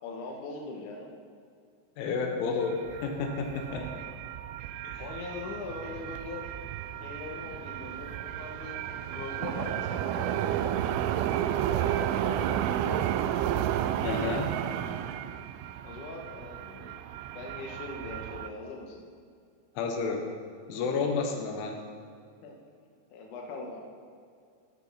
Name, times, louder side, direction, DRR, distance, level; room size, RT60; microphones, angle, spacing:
voice 1, 0.0-1.1 3.7-4.0 5.0-6.5 7.0-10.5 11.7-13.1 15.8-17.0 17.3-19.0 22.4-22.5 23.1-23.8, left 3 dB, 60° left, 1 dB, 2.3 m, -41 dB
voice 2, 2.0-3.8 4.8-5.1 14.0-14.5 19.8-20.3 20.7-21.9, left 4 dB, 85° left, 3 dB, 3.7 m, -31 dB
sound 1, 2.6-18.5, right 11 dB, 85° right, 3.0 m, -32 dB
14.0 x 9.1 x 5.8 m, 2.4 s
omnidirectional pair, 5.4 m